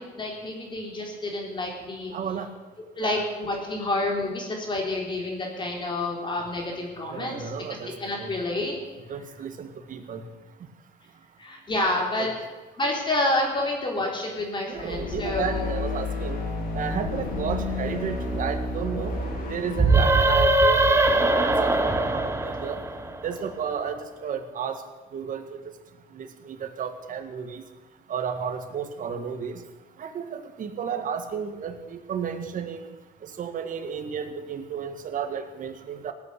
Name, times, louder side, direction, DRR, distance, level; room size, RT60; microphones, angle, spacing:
voice 1, 0.0-2.1 3.0-7.4 8.0-8.7 11.4-12.4 12.8-15.7, left 2 dB, 30° left, 0 dB, 3.9 m, -28 dB
voice 2, 2.1-2.5 3.0-3.2 7.1-8.3 9.1-10.2 12.1-12.3 14.7-16.4 16.7-19.1 19.5-22.8 23.2-24.8 25.1-25.6 26.1-27.6 28.1-29.6 30.0-32.9 33.2-36.1, right 7 dB, 50° right, 7 dB, 1.8 m, -33 dB
sound 1, 14.7-20.0, left 2 dB, 55° left, 4.8 m, -31 dB
sound 2, 19.7-23.3, right 2 dB, 15° right, 1.4 m, -21 dB
17.5 x 8.7 x 8.2 m, 1.2 s
cardioid pair, 110°, 17 cm